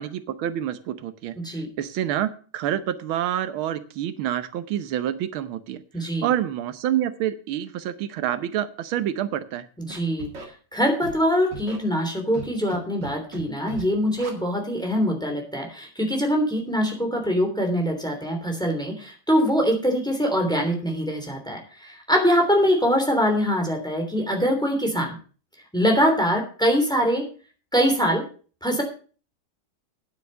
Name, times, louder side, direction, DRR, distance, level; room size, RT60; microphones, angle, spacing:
voice 1, 0.0-9.7, right 11 dB, 85° right, 12 dB, 1.7 m, -28 dB
voice 2, 5.9-6.3 9.8-10.3 10.7-25.1 25.7-27.2 27.7-28.2 28.6-28.8, equal, ahead, 3 dB, 3.0 m, -23 dB
Scratching (performance technique), 9.9-10.5 11.0-11.2 11.5-11.8 12.3-12.8 13.0-13.4 13.7-13.8 14.2-14.3, right 2 dB, 60° right, 2.7 m, -36 dB
9.4 x 8.4 x 6.3 m, 0.39 s
omnidirectional pair, 2.2 m